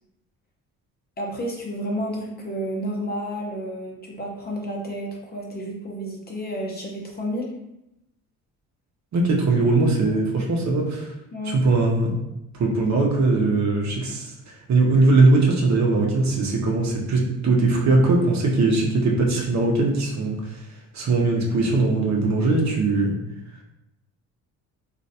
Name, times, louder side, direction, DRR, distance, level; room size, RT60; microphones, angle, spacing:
voice 1, 1.2-7.5 10.0-10.1 11.3-11.6, equal, 25° left, -1 dB, 0.8 m, -31 dB
voice 2, 9.1-11.1 11.5-12.2 12.6-14.3 14.7-20.4 20.9-23.1, right 3 dB, 50° right, 0 dB, 0.8 m, -20 dB
3.0 x 2.5 x 2.7 m, 0.87 s
cardioid pair, 80°, 35 cm